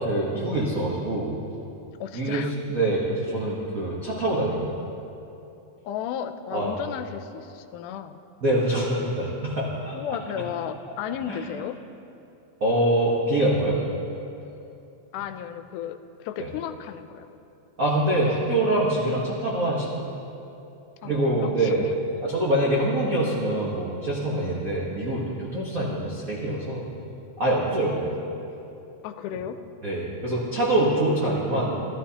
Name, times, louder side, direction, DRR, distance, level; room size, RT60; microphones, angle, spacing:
voice 1, 0.0-1.4 2.1-4.7 6.5-6.8 8.4-10.0 11.3-11.4 12.6-13.8 16.4-16.5 17.8-20.1 21.0-21.9 22.2-26.9 27.4-28.1 29.8-31.8, right 1 dB, 70° right, -5 dB, 0.7 m, -25 dB
voice 2, 2.0-2.5 5.8-8.2 9.9-11.8 15.1-17.3 21.0-21.2 21.4-21.8 27.8-28.1 29.0-29.6, left 9 dB, 90° left, 9 dB, 2.0 m, -34 dB
15.5 x 12.0 x 2.8 m, 2.8 s
omnidirectional pair, 3.5 m